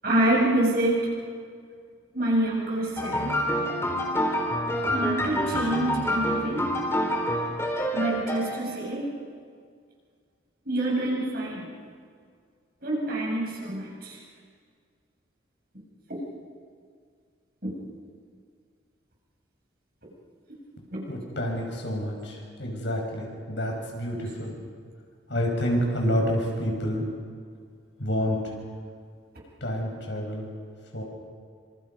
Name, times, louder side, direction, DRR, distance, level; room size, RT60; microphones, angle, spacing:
voice 1, 0.0-1.1 2.1-3.4 4.9-6.7 7.9-9.2 10.7-11.7 12.8-14.2 17.6-17.7 20.9-21.0, right 1 dB, 50° right, -4 dB, 7.6 m, -26 dB
sound 1, 3.0-8.7, equal, 15° left, 2.9 m, -27 dB
voice 2, 21.1-24.6 25.3-27.0 28.0-28.4 29.6-30.5 30.9-31.0, equal, 65° left, 0 dB, 5.8 m, -28 dB
27.5 x 26.0 x 5.5 m, 2.1 s
head